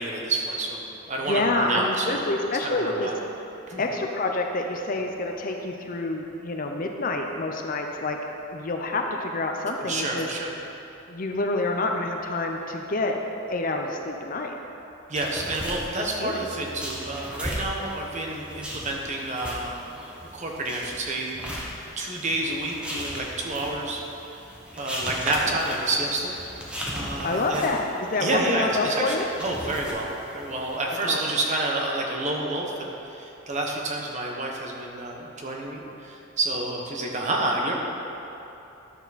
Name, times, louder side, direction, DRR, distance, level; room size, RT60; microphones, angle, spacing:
voice 1, 0.0-2.2 2.6-3.1 3.7-3.8 9.8-10.5 15.1-20.0 20.3-21.4 22.0-24.0 24.7-26.4 26.9-27.7 28.2-30.1 30.3-37.7, right 2 dB, 35° right, -1 dB, 1.0 m, -29 dB
voice 2, 1.3-3.1 3.8-8.2 8.5-10.3 11.1-13.1 13.5-14.6 15.9-16.4 27.2-29.3 31.0-31.2, left 2 dB, 40° left, 3 dB, 0.6 m, -27 dB
sound 1, 15.1-30.8, equal, 5° right, 1.0 m, -38 dB
11.0 x 6.8 x 4.2 m, 2.9 s
head